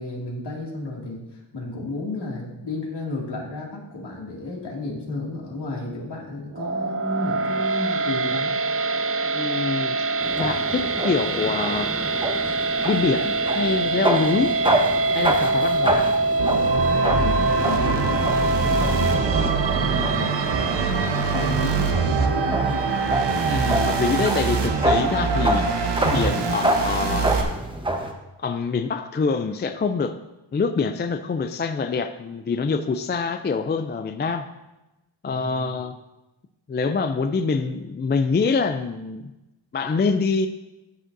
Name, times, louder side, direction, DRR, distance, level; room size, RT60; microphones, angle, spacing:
voice 1, 0.0-8.5 17.1-19.4 19.7-22.9 35.3-35.8, left 2 dB, 65° left, -3 dB, 2.4 m, -32 dB
sound 1, 6.5-24.8, right 3 dB, 30° right, 0.5 m, -25 dB
voice 2, 9.3-10.0 10.4-11.9 12.8-14.5 15.1-16.0 23.5-25.7 26.1-27.5 28.4-30.2 30.5-34.5 35.2-35.9 36.7-39.3 39.7-40.5, left 4 dB, 25° left, 8 dB, 0.4 m, -25 dB
sound 2, 10.2-28.1, right 1 dB, 10° right, 1.0 m, -28 dB
sound 3, 16.4-27.4, right 4 dB, 65° right, 1.0 m, -24 dB
12.5 x 6.3 x 2.7 m, 1.0 s
cardioid pair, 85°, 45 cm